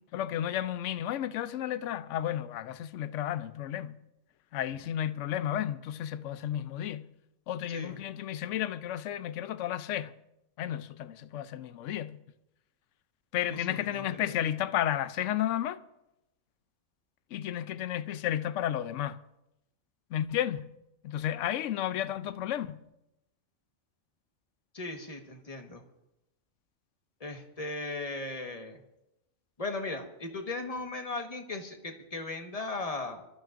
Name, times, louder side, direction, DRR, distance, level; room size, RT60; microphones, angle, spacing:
voice 1, 0.1-4.0 4.5-7.1 7.5-10.1 10.6-12.2 13.3-15.8 17.3-19.2 20.1-20.7 21.0-22.8, left 11 dB, 65° left, 0.9 m, -32 dB
voice 2, 7.7-8.0 13.5-14.3 24.7-25.8 27.2-28.8 29.6-33.2, left 3 dB, 25° left, 1.4 m, -37 dB
26.0 x 13.5 x 2.6 m
omnidirectional pair, 1.5 m